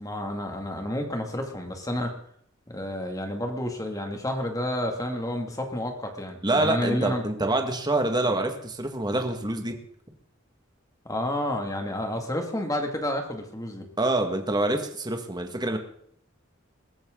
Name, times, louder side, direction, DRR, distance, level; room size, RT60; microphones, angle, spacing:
voice 1, 0.0-2.1 2.7-7.2 11.0-13.9, left 1 dB, 15° left, 4 dB, 2.4 m, -30 dB
voice 2, 6.4-9.8 14.0-15.8, right 2 dB, 20° right, 5 dB, 1.9 m, -26 dB
22.5 x 13.5 x 3.9 m, 0.65 s
head